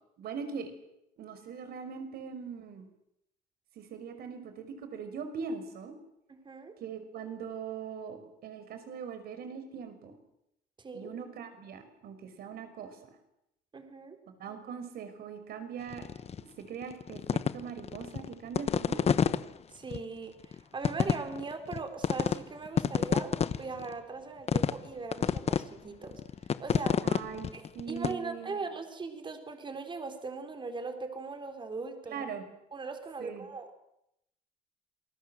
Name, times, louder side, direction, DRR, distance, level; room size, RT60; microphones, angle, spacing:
voice 1, 0.2-0.7 1.2-2.9 3.8-5.9 6.8-10.2 10.9-13.0 14.4-16.1 16.6-19.1 27.0-27.5 27.7-28.7 32.1-32.5 33.2-33.4, right 6 dB, 65° right, 8 dB, 5.5 m, -41 dB
voice 2, 6.3-6.7 10.8-11.1 13.7-14.2 19.7-26.2 26.6-27.1 27.5-32.3 32.7-33.8, right 4 dB, 30° right, 7 dB, 4.1 m, -40 dB
sound 1, 15.9-16.4 16.8-19.4 19.9-20.0 20.4-20.6 20.8-21.8 22.0-22.4 22.7-23.9 24.5-24.9 25.1-25.6 26.0-28.1, left 7 dB, 40° left, 1.1 m, -28 dB
27.5 x 20.0 x 7.8 m, 0.82 s
cardioid pair, 110°, 17 cm